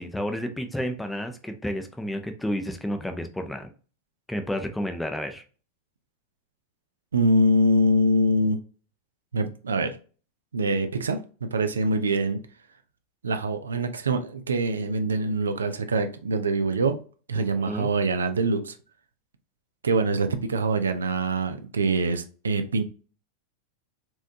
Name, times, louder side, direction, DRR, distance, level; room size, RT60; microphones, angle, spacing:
voice 1, 0.0-3.7 4.3-5.4 17.3-17.9, equal, 5° left, 6 dB, 0.6 m, -31 dB
voice 2, 7.1-8.6 9.3-10.0 10.5-12.4 13.2-17.0 17.3-18.7 19.8-22.8, right 1 dB, 70° right, 8 dB, 0.5 m, -24 dB
4.4 x 3.5 x 2.7 m, 0.37 s
figure-of-eight pair, 90°, 0 cm